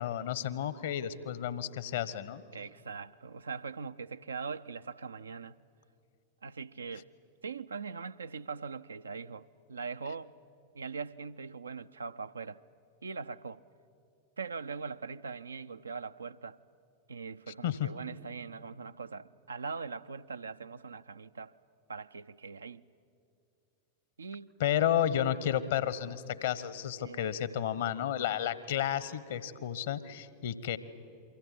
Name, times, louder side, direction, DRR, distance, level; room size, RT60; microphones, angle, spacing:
voice 1, 0.0-2.4 17.6-17.9 24.6-30.8, left 10 dB, 60° left, 1.2 m, -32 dB
voice 2, 2.5-5.6 6.4-7.1 7.4-10.3 10.7-12.6 13.0-13.6 14.4-16.6 17.1-21.5 21.9-22.8 24.2-24.5 27.0-27.2, right 5 dB, 75° right, 0.6 m, -41 dB
28.0 x 24.0 x 8.4 m
figure-of-eight pair, 90°, 0 cm